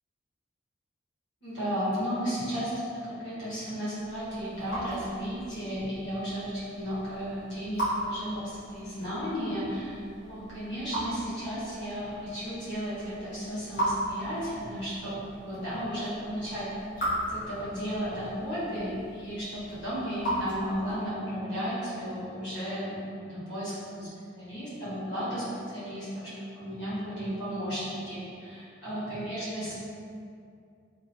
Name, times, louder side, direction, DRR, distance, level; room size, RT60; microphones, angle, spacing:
voice 1, 1.4-24.1 24.4-29.7, equal, 70° left, -11 dB, 1.5 m, -34 dB
Raindrop / Drip, 4.0-21.2, right 1 dB, 50° left, 1.1 m, -38 dB
2.9 x 2.5 x 2.8 m, 2.4 s
head